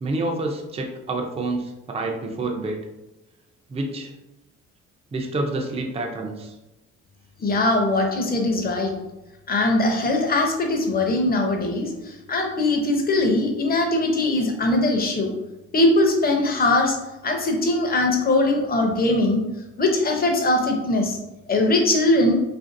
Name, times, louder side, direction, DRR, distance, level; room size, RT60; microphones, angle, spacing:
voice 1, 0.0-2.8 3.7-4.1 5.1-6.5, right 2 dB, 20° right, 2 dB, 0.4 m, -28 dB
voice 2, 7.4-8.9 9.5-15.3 15.7-17.0 17.2-19.4 19.8-21.2 21.5-22.3, left 2 dB, 30° left, 2 dB, 0.6 m, -21 dB
2.5 x 2.5 x 2.5 m, 0.99 s
cardioid pair, 90°, 30 cm